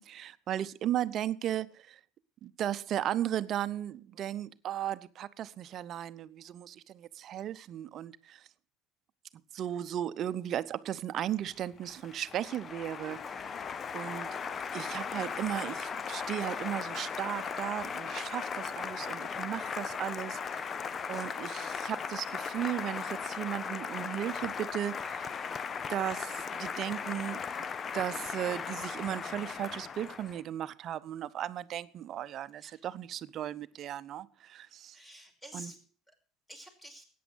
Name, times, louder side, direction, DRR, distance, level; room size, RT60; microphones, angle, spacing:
voice 1, 0.0-2.0 2.4-8.5 9.5-13.5 13.9-14.4 14.7-20.8 21.1-25.3 25.9-27.5 27.9-35.0 35.5-35.7, right 11 dB, 50° right, 0.7 m, -36 dB
Applause, 11.5-30.4, left 6 dB, 35° left, 0.8 m, -37 dB
voice 2, 21.0-21.6 32.6-32.8 34.6-34.7 34.9-35.8 36.5-37.1, right 1 dB, 15° left, 5.6 m, -50 dB
14.0 x 9.4 x 6.3 m
hypercardioid pair, 75°, 0 cm